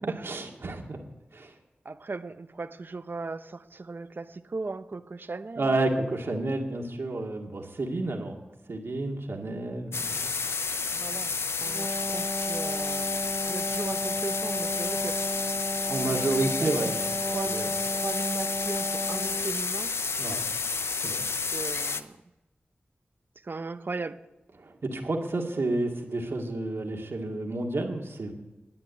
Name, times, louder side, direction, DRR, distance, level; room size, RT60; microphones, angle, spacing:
voice 1, 0.0-1.0 1.3-1.5 5.6-8.4 8.7-10.3 15.9-16.9 17.5-17.7 20.2-20.4 21.0-21.2 24.6-28.3, right 2 dB, 75° right, 1 dB, 2.1 m, -30 dB
voice 2, 1.8-5.8 10.9-15.5 16.1-16.9 17.2-19.9 21.5-22.2 23.4-24.2, right 3 dB, 55° right, 12 dB, 0.7 m, -37 dB
sound 1, 9.9-22.0, left 4 dB, 80° left, 0.6 m, -31 dB
Wind instrument woodwind instrument, 11.6-19.6, equal, 5° left, 0.5 m, -34 dB
12.0 x 9.8 x 8.2 m, 1.0 s
cardioid pair, 50°, 4 cm